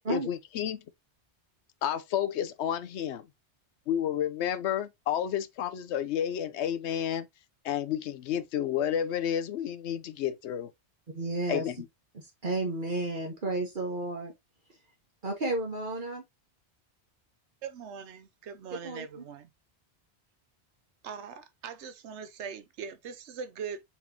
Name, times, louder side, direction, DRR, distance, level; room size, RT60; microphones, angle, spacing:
voice 1, 0.1-0.8 1.8-3.3 3.9-7.3 7.6-10.7 11.5-11.8, left 9 dB, 85° left, 0.9 m, -31 dB
voice 2, 11.1-11.6 12.1-14.3 15.2-16.2 18.8-19.2, right 2 dB, 50° right, 1.3 m, -32 dB
voice 3, 17.6-19.5 21.0-23.8, right 6 dB, 90° right, 1.0 m, -41 dB
4.2 x 4.2 x 2.8 m
omnidirectional pair, 1.1 m